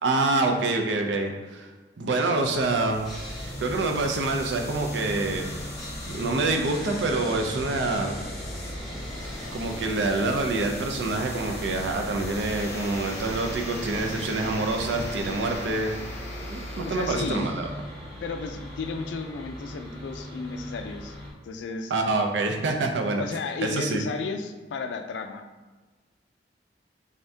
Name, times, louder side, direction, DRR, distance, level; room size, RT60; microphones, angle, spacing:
voice 1, 0.0-1.7 2.0-3.2 3.6-5.5 6.1-8.2 9.5-16.0 16.5-17.7 21.9-23.2 23.6-24.1, right 3 dB, 85° right, 3 dB, 0.5 m, -26 dB
sound 1, 2.3-17.7, left 1 dB, 15° left, 0.6 m, -39 dB
Sawing, 3.0-21.3, equal, ahead, 1.2 m, -39 dB
voice 2, 16.8-17.4 18.2-21.2 21.4-22.0 23.2-25.4, left 4 dB, 80° left, 7 dB, 0.4 m, -33 dB
3.5 x 3.4 x 2.7 m, 1.3 s
head